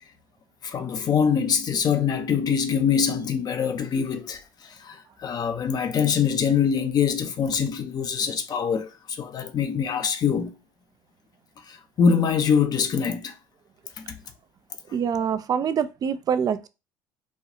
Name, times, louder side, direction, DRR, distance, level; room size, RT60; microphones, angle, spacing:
voice 1, 0.6-10.6 11.7-13.4 14.0-14.2 14.9-15.0, left 7 dB, 40° left, 0.6 m, -24 dB
voice 2, 14.9-16.7, right 7 dB, 40° right, 0.4 m, -25 dB
4.2 x 2.3 x 2.7 m
hypercardioid pair, 70°, 10 cm